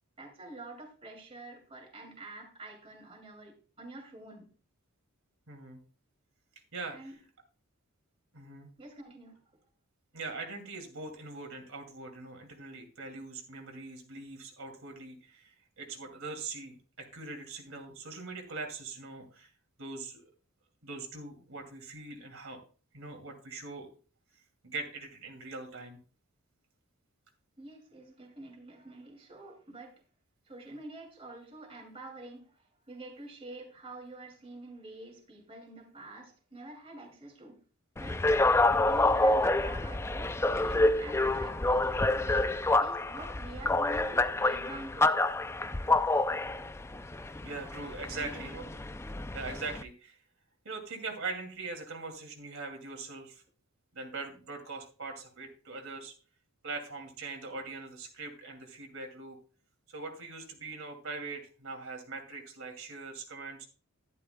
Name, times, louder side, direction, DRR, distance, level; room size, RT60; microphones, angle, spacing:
voice 1, 0.2-4.5 6.9-7.2 8.8-9.4 27.6-30.0 30.5-37.6 38.0-38.3 38.8-42.3 42.8-45.3 48.1-48.7, right 2 dB, 25° right, 2.6 m, -47 dB
voice 2, 5.5-5.8 6.7-7.1 8.3-8.7 10.1-15.5 15.8-19.5 19.8-20.2 20.8-22.6 22.9-23.9 24.6-26.0 42.2-42.4 47.4-48.6 49.3-50.2 50.6-53.4 53.9-56.1 56.6-59.4 59.9-63.7, right 3 dB, 65° right, 2.6 m, -42 dB
sound 1, 38.0-49.8, left 2 dB, 10° left, 0.4 m, -28 dB
12.0 x 11.5 x 2.3 m
head